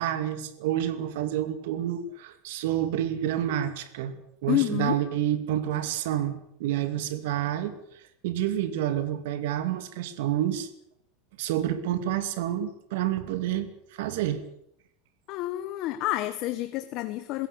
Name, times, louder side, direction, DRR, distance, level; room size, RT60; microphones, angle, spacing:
voice 1, 0.0-10.7 11.4-14.4, right 11 dB, 70° right, 10 dB, 2.5 m, -29 dB
voice 2, 4.5-5.0 15.3-17.5, left 16 dB, 45° left, 11 dB, 1.2 m, -29 dB
21.5 x 17.0 x 8.7 m, 0.76 s
supercardioid pair, 160°, 0 cm